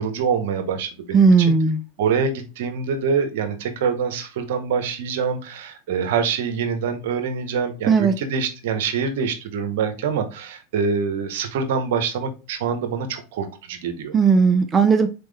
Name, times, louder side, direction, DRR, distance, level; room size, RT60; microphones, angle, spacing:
voice 1, 0.0-1.5 2.0-14.2, right 6 dB, 70° right, 8 dB, 0.9 m, -25 dB
voice 2, 1.1-1.8 7.9-8.1 14.1-15.1, right 5 dB, 20° right, 7 dB, 0.5 m, -16 dB
4.1 x 3.5 x 3.3 m, 0.31 s
hypercardioid pair, 105°, 0 cm